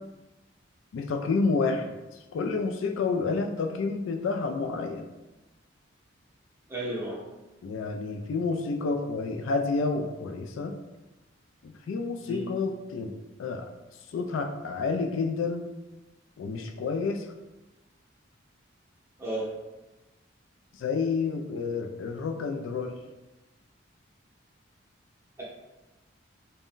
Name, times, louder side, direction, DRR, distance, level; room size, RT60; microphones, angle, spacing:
voice 1, 0.9-2.0 2.3-5.1 7.6-10.7 11.6-13.1 13.4-13.7 14.1-15.7 16.4-17.3 20.8-23.0, left 4 dB, 75° left, 5 dB, 0.3 m, -29 dB
voice 2, 6.7-7.2 12.2-12.5 19.2-19.5, right 1 dB, 15° right, -6 dB, 0.6 m, -33 dB
2.5 x 2.1 x 3.6 m, 1.1 s
head